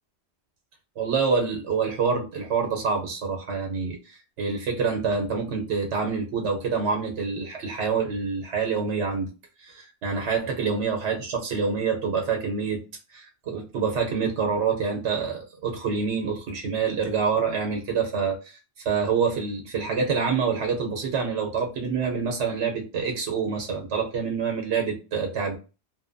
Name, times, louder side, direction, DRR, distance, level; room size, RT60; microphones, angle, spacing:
voice 1, 1.0-9.3 9.6-12.8 13.1-18.6 18.8-25.6, right 5 dB, 85° right, 2 dB, 1.0 m, -26 dB
2.8 x 2.2 x 2.5 m, 0.31 s
omnidirectional pair, 1.2 m